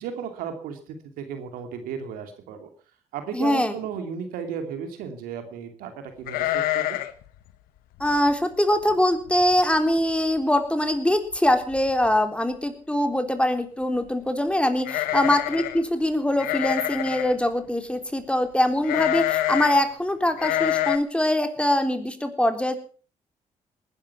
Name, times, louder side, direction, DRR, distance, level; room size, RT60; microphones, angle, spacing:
voice 1, 0.0-2.7 3.1-7.0 15.2-15.3, right 7 dB, 80° right, 7 dB, 2.7 m, -35 dB
voice 2, 3.3-3.7 8.0-22.7, left 1 dB, 5° left, 8 dB, 3.6 m, -23 dB
sound 1, 6.3-7.2 7.5-7.6 8.0-8.3 8.9-9.0 9.3-9.8 10.1-10.2 11.3-11.4 11.7-12.1 14.8-15.8 16.4-17.3 18.8-19.8 20.4-21.0, left 14 dB, 80° left, 1.2 m, -26 dB
19.5 x 11.0 x 5.8 m, 0.41 s
hypercardioid pair, 45°, 15 cm